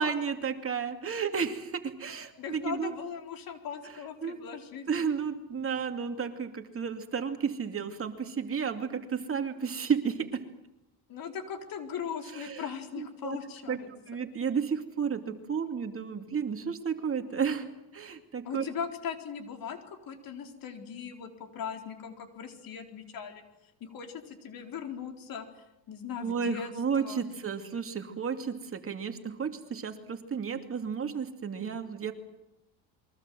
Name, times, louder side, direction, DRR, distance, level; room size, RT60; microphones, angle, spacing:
voice 1, 0.0-3.0 4.2-4.4 4.9-10.5 12.3-12.7 13.0-13.4 13.7-13.8 14.1-18.6 26.2-32.1, right 6 dB, 35° right, 5 dB, 2.6 m, -32 dB
voice 2, 2.4-4.9 11.1-13.9 18.4-23.4 23.8-26.7 27.0-27.2, left 7 dB, 55° left, 4 dB, 4.1 m, -39 dB
28.0 x 23.0 x 7.7 m, 0.89 s
cardioid pair, 105°, 40 cm